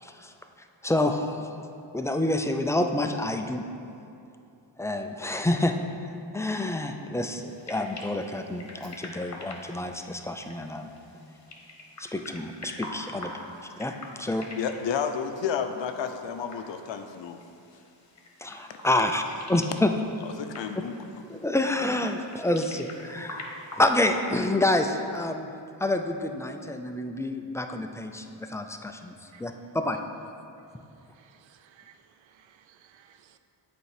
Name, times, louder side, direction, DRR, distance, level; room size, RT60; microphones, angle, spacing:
voice 1, 0.0-0.3 0.8-1.7 1.9-3.6 4.8-5.7 6.3-10.9 12.0-13.3 13.8-14.5 18.4-19.2 19.5-19.9 21.3-25.5 25.8-29.1 29.4-30.0, left 1 dB, 5° left, 5 dB, 0.3 m, -28 dB
sound 1, 7.3-23.8, left 2 dB, 35° left, 1.1 m, -46 dB
voice 2, 14.6-17.4 20.4-21.0, left 7 dB, 75° left, 7 dB, 0.6 m, -31 dB
voice 3, 31.2-32.0 32.3-33.4, right 9 dB, 85° right, 9 dB, 0.6 m, -58 dB
8.0 x 4.4 x 4.8 m, 2.6 s
cardioid pair, 85°, 45 cm